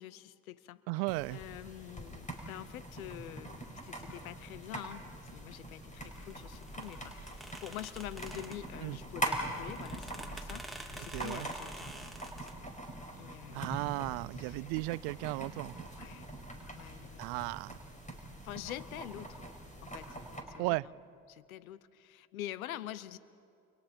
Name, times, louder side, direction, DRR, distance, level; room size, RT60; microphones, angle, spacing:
voice 1, 0.0-0.8 1.3-5.0 5.3-12.5 13.2-14.7 16.0-16.3 16.7-17.5 18.4-19.4 19.8-20.2 20.5-20.9 21.3-23.2, left 13 dB, 85° left, 18 dB, 0.7 m, -46 dB
voice 2, 0.9-1.4 8.8-9.0 11.1-11.5 13.5-15.9 17.2-17.8 20.6-20.9, right 24 dB, 65° right, 23 dB, 0.5 m, -35 dB
sound 1, 1.1-20.4, right 1 dB, 20° left, 5.3 m, -43 dB
sound 2, 6.0-12.5, right 1 dB, ahead, 2.8 m, -47 dB
29.5 x 28.5 x 4.4 m, 2.5 s
hypercardioid pair, 60°, 41 cm